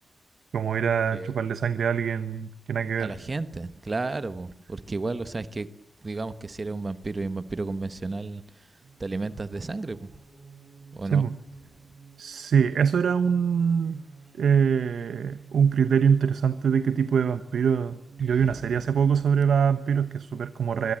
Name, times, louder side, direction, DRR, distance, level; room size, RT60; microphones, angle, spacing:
voice 1, 0.5-3.1 11.1-11.3 12.2-14.0 14.4-20.9, right 7 dB, 85° right, 1.0 m, -24 dB
voice 2, 3.0-5.7 6.0-8.4 9.0-10.1 10.9-11.3 18.2-18.5, right 3 dB, 30° right, 1.1 m, -32 dB
sound 1, 8.8-19.7, right 5 dB, 65° right, 5.1 m, -52 dB
25.0 x 22.0 x 7.7 m
wide cardioid pair, 130°, 0 cm